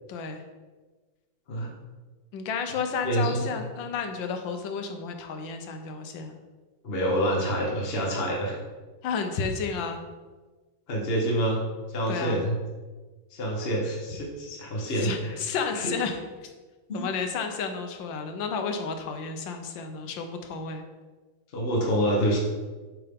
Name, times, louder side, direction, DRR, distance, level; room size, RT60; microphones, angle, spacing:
voice 1, 0.1-0.4 2.3-6.4 9.0-10.0 12.1-12.4 14.9-16.5 16.9-20.8, left 5 dB, 75° left, 5 dB, 1.4 m, -32 dB
voice 2, 3.0-3.4 6.8-8.5 10.9-11.6 11.9-12.6 13.3-15.3 15.7-15.9 16.9-17.0 21.5-22.4, right 1 dB, 40° left, -2 dB, 0.9 m, -27 dB
7.6 x 3.6 x 3.6 m, 1.3 s
omnidirectional pair, 2.2 m